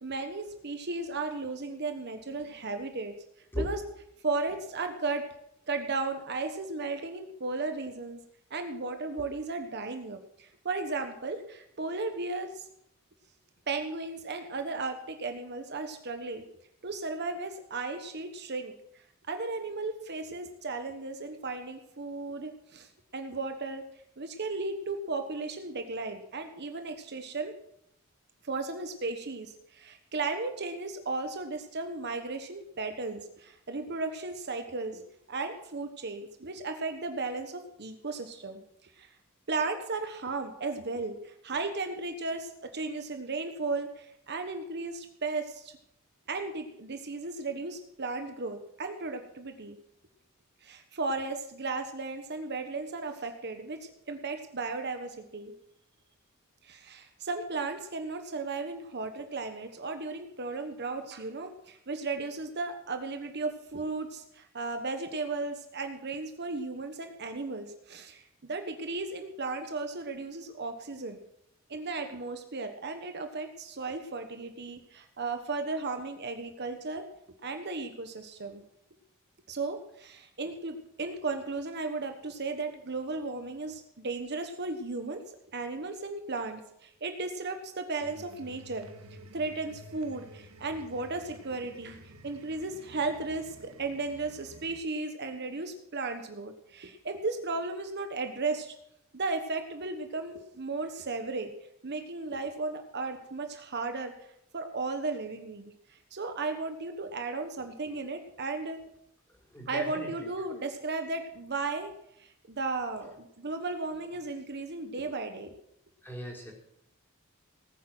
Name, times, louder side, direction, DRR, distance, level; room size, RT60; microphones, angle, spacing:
voice 1, 0.0-3.1 3.6-3.8 4.2-5.3 5.7-8.2 8.5-12.7 13.7-16.4 16.8-23.8 24.2-27.5 28.4-35.0 35.3-39.1 39.5-45.8 46.3-49.8 50.6-55.5 56.6-71.2 71.7-77.1 77.4-78.6 79.5-85.2 85.5-88.9 89.3-98.7 99.1-101.5 101.8-104.3 104.5-108.8 109.7-111.9 112.2-115.5, right 3 dB, 55° right, 6 dB, 1.2 m, -35 dB
voice 2, 3.5-3.9 109.3-110.3 116.0-116.5, left 1 dB, 10° left, -3 dB, 4.9 m, -37 dB
sound 1, 88.0-94.8, right 1 dB, 85° right, 1.7 m, -51 dB
18.5 x 9.5 x 6.1 m, 0.76 s
head